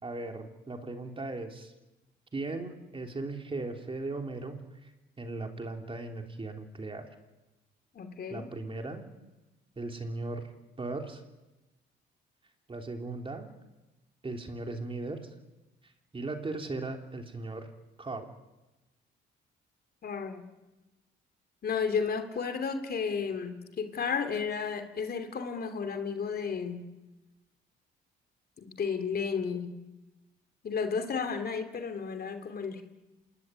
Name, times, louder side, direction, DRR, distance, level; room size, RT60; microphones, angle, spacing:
voice 1, 0.0-1.7 2.3-4.9 5.2-7.1 8.3-9.1 9.8-10.5 10.8-11.2 12.7-13.5 14.2-15.3 16.1-17.7 18.0-18.3, right 2 dB, 25° right, 4 dB, 3.6 m, -37 dB
voice 2, 7.9-8.5 20.0-20.4 21.6-26.9 28.6-29.7 30.6-32.8, left 6 dB, 50° left, 8 dB, 3.2 m, -33 dB
27.0 x 19.5 x 9.8 m, 1.0 s
cardioid pair, 90°, 20 cm